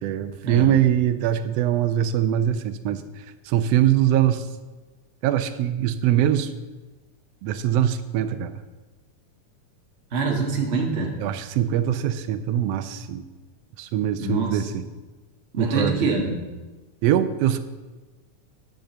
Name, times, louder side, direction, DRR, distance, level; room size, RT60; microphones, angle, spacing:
voice 1, 0.0-3.0 3.5-4.4 5.2-6.5 7.4-8.6 11.2-13.2 13.8-14.8 15.6-16.1 17.0-17.6, right 11 dB, 80° right, 10 dB, 1.5 m, -22 dB
voice 2, 10.1-11.1 14.2-14.7 15.5-16.4, right 3 dB, 40° right, -1 dB, 0.9 m, -25 dB
10.5 x 5.2 x 6.9 m, 1.2 s
omnidirectional pair, 3.4 m